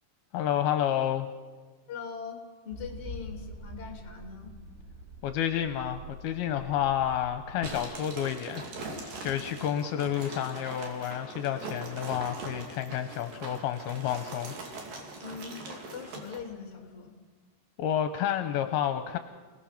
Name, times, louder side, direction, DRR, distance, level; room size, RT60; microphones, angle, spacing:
voice 1, 0.3-1.3 5.2-8.6 9.0-14.5 17.8-19.2, left 10 dB, 75° left, 8 dB, 2.6 m, -30 dB
voice 2, 1.9-4.5 15.2-17.1, left 6 dB, 20° left, 3 dB, 2.2 m, -41 dB
sound 1, 2.7-7.8, right 1 dB, 80° right, 4.9 m, -45 dB
sound 2, 7.6-16.4, right 2 dB, 55° right, 4.2 m, -41 dB
28.0 x 18.0 x 5.9 m, 1.4 s
omnidirectional pair, 4.7 m